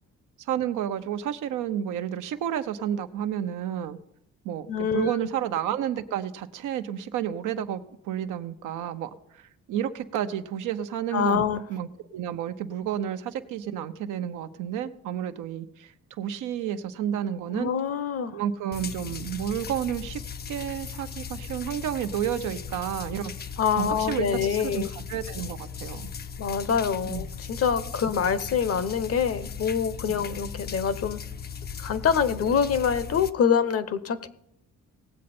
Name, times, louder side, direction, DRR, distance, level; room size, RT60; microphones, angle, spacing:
voice 1, 0.5-4.0 4.4-11.4 11.7-15.9 16.2-17.7 18.3-20.2 20.5-23.5 23.8-26.1 27.1-27.3, right 10 dB, 85° right, 8 dB, 0.8 m, -31 dB
voice 2, 4.7-5.1 11.1-11.6 17.5-18.4 23.6-24.9 26.4-31.2 31.8-34.3, left 7 dB, 50° left, 15 dB, 0.9 m, -25 dB
sound 1, 18.7-33.3, left 6 dB, 35° left, 0.5 m, -38 dB
18.5 x 7.6 x 4.3 m, 0.78 s
cardioid pair, 90°, 30 cm